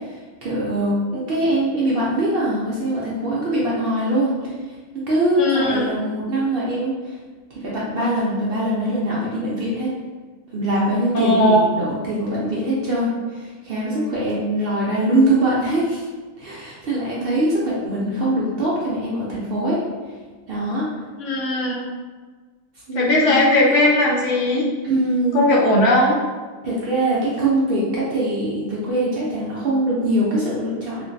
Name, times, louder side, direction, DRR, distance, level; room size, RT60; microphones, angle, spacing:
voice 1, 0.4-4.5 4.9-7.1 7.6-9.9 10.5-16.1 16.4-19.8 20.5-20.9 22.9-23.5 24.8-25.4 26.6-31.0, right 1 dB, 60° right, -6 dB, 0.7 m, -22 dB
voice 2, 5.4-5.9 11.1-11.6 21.2-21.8 22.9-24.6 25.3-26.1, left 1 dB, 70° left, -2 dB, 0.9 m, -18 dB
2.9 x 2.5 x 2.6 m, 1.4 s
omnidirectional pair, 1.4 m